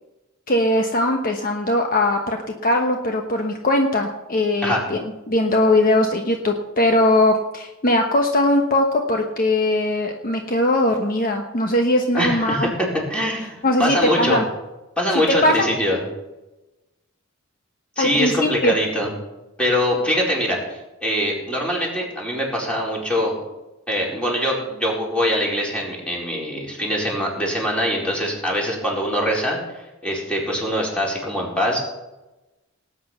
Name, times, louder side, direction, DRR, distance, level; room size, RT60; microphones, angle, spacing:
voice 1, 0.5-2.4 2.6-5.0 5.3-12.7 13.6-14.4 15.1-15.7 18.0-18.8, left 1 dB, 45° left, 3 dB, 1.2 m, -20 dB
voice 2, 12.1-12.7 13.1-14.4 15.0-16.0 18.0-19.1 19.6-23.4 23.9-29.6 30.0-31.8, equal, 5° left, -3 dB, 4.6 m, -23 dB
19.0 x 9.4 x 5.8 m, 1.0 s
head